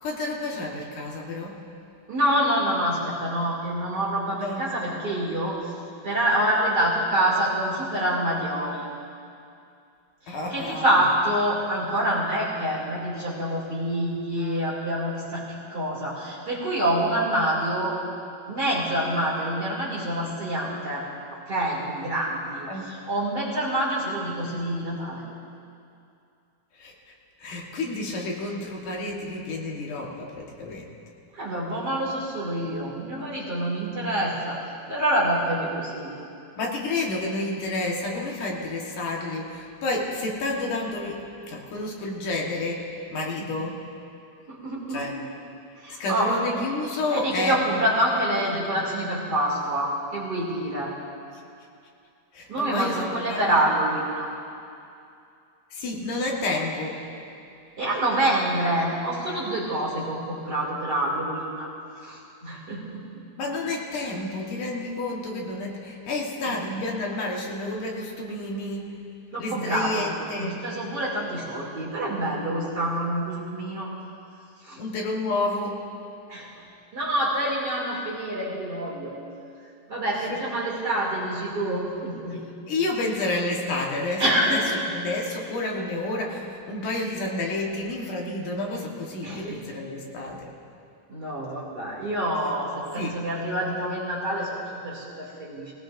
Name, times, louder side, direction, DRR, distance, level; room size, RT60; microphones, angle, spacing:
voice 1, 0.0-1.6 4.4-4.6 10.3-11.1 14.4-14.6 22.7-22.9 25.2-25.4 26.8-26.9 27.4-30.8 36.6-43.8 44.9-45.1 46.0-47.8 52.3-53.6 55.7-57.1 63.4-68.9 69.4-70.6 74.8-75.9 80.2-80.4 82.7-84.6 84.9-90.5 92.9-93.2, left 2 dB, 70° left, -1 dB, 2.9 m, -30 dB
voice 2, 2.1-5.7 6.0-8.9 10.3-15.4 15.7-17.9 18.5-21.0 21.5-25.2 31.3-34.6 34.9-36.1 43.4-43.5 44.5-45.1 45.8-46.4 47.1-50.9 52.5-54.3 57.8-61.7 62.0-63.5 69.3-73.9 74.6-74.8 76.3-76.5 76.9-79.1 79.9-82.4 84.2-84.6 89.2-89.6 91.1-95.7, right 1 dB, 30° right, -6 dB, 2.8 m, -26 dB
20.5 x 18.5 x 2.6 m, 2.5 s
omnidirectional pair, 3.8 m